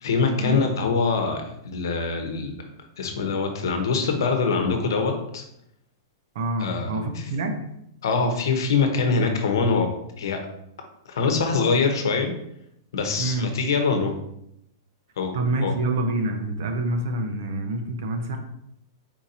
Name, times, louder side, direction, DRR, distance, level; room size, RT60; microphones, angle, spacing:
voice 1, 0.0-2.6 3.0-5.4 6.6-7.2 8.0-9.9 10.2-10.4 11.1-12.3 12.9-14.1 15.2-15.3 15.6-15.7, left 4 dB, 85° left, 4 dB, 0.9 m, -24 dB
voice 2, 6.3-7.7 13.2-13.5 15.3-18.4, right 2 dB, 55° right, 5 dB, 0.7 m, -27 dB
4.5 x 2.7 x 4.3 m, 0.77 s
supercardioid pair, 180°, 2 cm